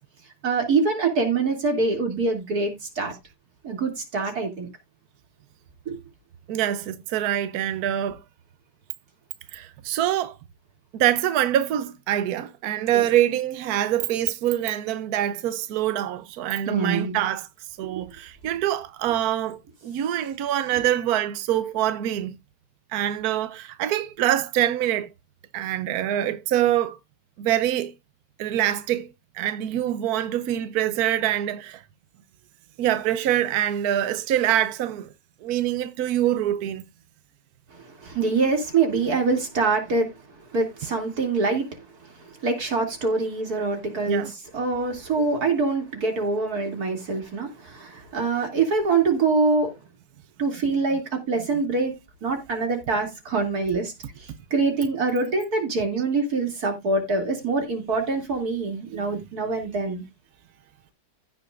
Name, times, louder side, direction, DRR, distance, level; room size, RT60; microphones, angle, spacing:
voice 1, 0.4-3.1 3.6-4.7 5.9-6.0 12.9-13.0 16.7-17.2 17.8-17.9 37.7-40.1 40.5-41.8 42.2-49.7 50.4-60.0, right 3 dB, 50° right, 3.2 m, -25 dB
voice 2, 6.5-8.2 9.5-10.3 10.9-17.5 17.8-22.4 22.9-25.1 25.5-27.0 27.4-27.9 28.4-29.1 29.3-31.8 32.8-35.1 35.4-36.8 44.1-44.3, right 12 dB, 65° right, 0.9 m, -25 dB
15.5 x 6.2 x 2.5 m
omnidirectional pair, 2.2 m